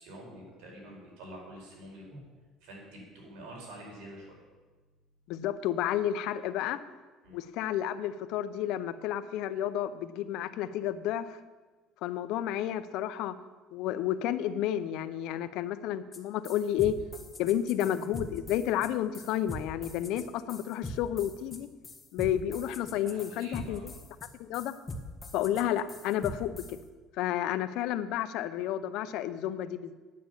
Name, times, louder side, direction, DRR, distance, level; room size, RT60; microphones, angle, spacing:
voice 1, 0.0-2.2 2.6-4.4 7.2-7.4 23.0-23.9, right 1 dB, 85° right, -2 dB, 4.8 m, -47 dB
voice 2, 5.3-6.8 7.3-11.4 12.0-13.3 13.7-16.9 17.4-21.7 22.1-23.9 24.4-24.8 25.3-26.8 27.2-29.9, left 11 dB, 70° left, 12 dB, 0.7 m, -31 dB
sound 1, 16.1-16.2 16.4-26.8, left 1 dB, 20° left, 1.2 m, -42 dB
9.4 x 8.8 x 7.1 m, 1.3 s
cardioid pair, 125°, 0 cm